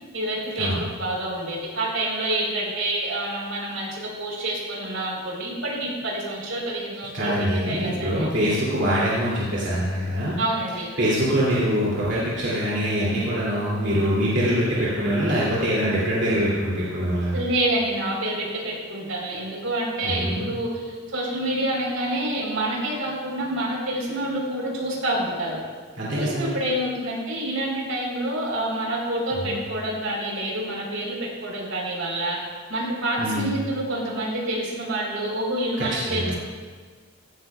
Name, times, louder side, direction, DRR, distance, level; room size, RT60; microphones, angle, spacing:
voice 1, 0.1-8.3 10.4-10.9 14.2-14.3 17.3-25.6 26.1-32.4 32.7-36.4, right 1 dB, 80° right, -2 dB, 3.9 m, -27 dB
voice 2, 7.1-10.4 11.0-17.4 20.0-20.5 26.0-26.5 29.5-29.6 33.2-33.5 35.9-36.3, equal, 60° right, -8 dB, 2.6 m, -24 dB
16.0 x 13.5 x 2.3 m, 1.5 s
head